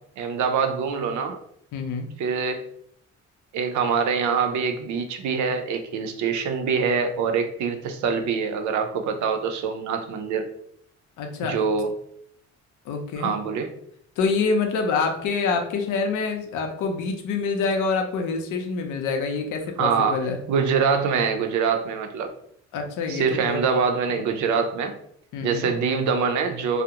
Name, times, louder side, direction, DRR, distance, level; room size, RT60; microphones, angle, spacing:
voice 1, 0.0-1.4 2.2-2.6 3.5-10.5 11.4-11.9 13.2-13.7 19.8-20.2 20.5-22.3 23.1-25.0 25.4-26.8, right 5 dB, 75° right, 6 dB, 0.5 m, -24 dB
voice 2, 1.7-2.1 11.2-11.5 12.9-13.4 14.2-20.4 22.7-23.6 25.3-25.7, left 4 dB, 85° left, 4 dB, 0.6 m, -26 dB
2.3 x 2.0 x 2.8 m, 0.67 s
cardioid pair, 90°, 30 cm